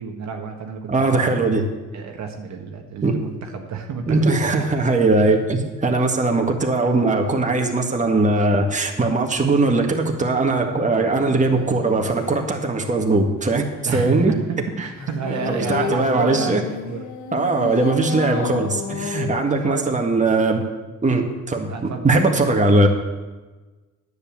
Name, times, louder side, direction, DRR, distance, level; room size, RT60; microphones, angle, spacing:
voice 1, 0.0-1.5 1.9-4.7 13.8-17.1 18.1-18.3 19.3-20.0 21.7-22.1, right 5 dB, 65° right, 2 dB, 1.4 m, -30 dB
voice 2, 0.9-1.7 3.0-3.2 4.1-13.7 13.9-14.3 15.3-16.6 17.3-20.6 21.0-22.9, right 2 dB, 25° right, 2 dB, 1.8 m, -20 dB
sound 1, 10.9-12.7 15.0-20.0, left 7 dB, 70° left, 1.5 m, -32 dB
10.0 x 8.2 x 7.3 m, 1.2 s
cardioid pair, 90°, 30 cm